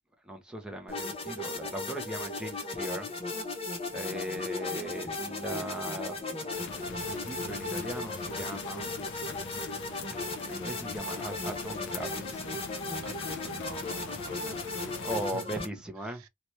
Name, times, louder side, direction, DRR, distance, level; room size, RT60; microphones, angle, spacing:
voice 1, 0.2-3.1 3.9-8.9 10.5-12.4 15.0-16.2, equal, 5° right, 0.6 m, -38 dB
sound 1, 0.9-15.7, left 2 dB, 25° left, 0.8 m, -36 dB
voice 2, 4.1-4.5 13.0-15.6 16.0-16.3, right 5 dB, 70° right, 0.4 m, -47 dB
sound 2, 6.5-15.3, left 5 dB, 55° left, 0.4 m, -43 dB
2.8 x 2.2 x 3.0 m
head